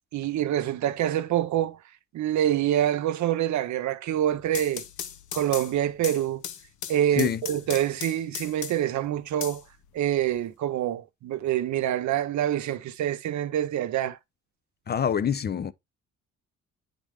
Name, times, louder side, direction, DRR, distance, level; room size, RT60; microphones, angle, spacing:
voice 1, 0.1-1.8 2.1-4.8 5.3-6.4 6.9-9.6 9.9-14.2, right 11 dB, 70° right, 0.7 m, -26 dB
sound 1, 4.3-9.0 9.4-10.4, left 9 dB, 75° left, 0.8 m, -37 dB
voice 2, 14.9-15.7, left 8 dB, 35° left, 0.5 m, -25 dB
8.6 x 4.0 x 3.5 m
cardioid pair, 90°, 30 cm